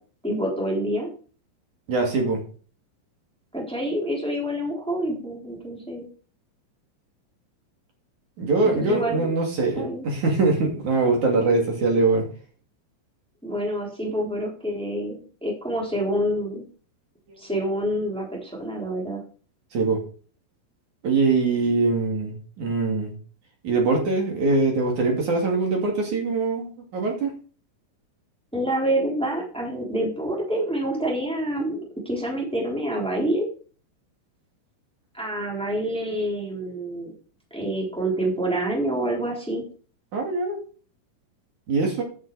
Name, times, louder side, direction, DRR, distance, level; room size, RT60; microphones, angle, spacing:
voice 1, 0.2-1.1 3.5-6.1 8.6-9.3 9.8-10.0 13.4-16.7 17.4-19.2 28.5-31.8 32.0-33.5 35.1-37.1 37.5-39.7, right 1 dB, ahead, -2 dB, 2.7 m, -27 dB
voice 2, 1.9-2.4 8.4-12.3 19.7-20.0 21.0-23.1 23.6-27.4 40.1-40.6 41.7-42.0, right 3 dB, 45° right, 1 dB, 3.2 m, -23 dB
11.0 x 6.6 x 4.9 m, 0.40 s
omnidirectional pair, 5.9 m